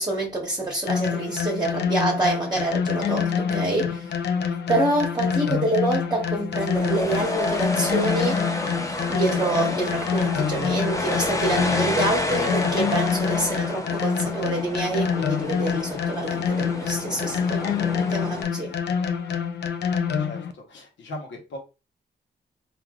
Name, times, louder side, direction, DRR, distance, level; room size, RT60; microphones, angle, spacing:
voice 1, 0.0-4.0 4.7-8.4 9.1-18.7, right 2 dB, 20° right, 1.1 m, -27 dB
sound 1, 0.9-20.5, left 7 dB, 65° left, 0.5 m, -26 dB
sound 2, 6.5-18.4, left 2 dB, 15° left, 0.5 m, -30 dB
voice 2, 20.2-21.6, left 1 dB, 80° left, 1.0 m, -39 dB
3.2 x 2.5 x 2.3 m
cardioid pair, 60°, 19 cm